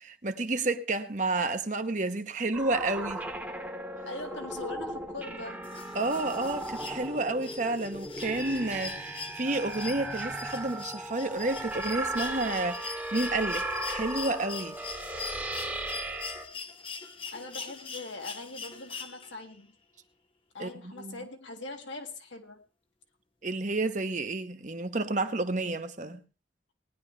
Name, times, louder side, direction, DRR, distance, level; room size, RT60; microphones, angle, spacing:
voice 1, 0.0-3.2 5.9-14.8 20.6-21.2 23.4-26.2, right 2 dB, 40° right, 1.0 m, -30 dB
sound 1, 2.5-16.5, right 1 dB, 10° right, 1.1 m, -37 dB
voice 2, 4.0-5.7 17.3-19.7 20.5-22.6, left 2 dB, 80° left, 2.1 m, -41 dB
sound 2, 5.6-19.6 21.0-21.1, left 5 dB, 30° left, 0.9 m, -42 dB
19.0 x 10.5 x 3.3 m
head